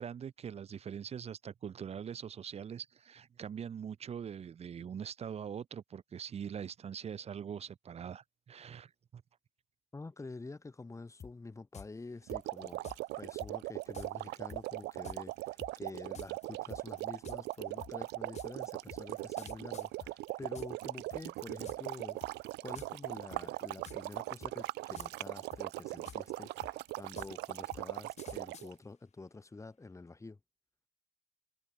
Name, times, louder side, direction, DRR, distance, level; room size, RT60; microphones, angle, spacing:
voice 1, 0.0-9.2, right 8 dB, 40° right, 1.1 m, -43 dB
voice 2, 9.9-30.4, left 3 dB, 15° left, 6.3 m, -48 dB
sound 1, 11.2-11.3 11.7-11.9 12.3-13.0 13.4-13.5 13.9-14.1 14.5-20.9 21.1-22.0 22.2-22.5 22.8-23.1 23.3-24.2 24.4-25.3 25.5-28.7, left 7 dB, 40° left, 3.3 m, -50 dB
sound 2, 12.3-28.7, right 19 dB, 85° right, 1.3 m, -40 dB
cardioid pair, 110°, 17 cm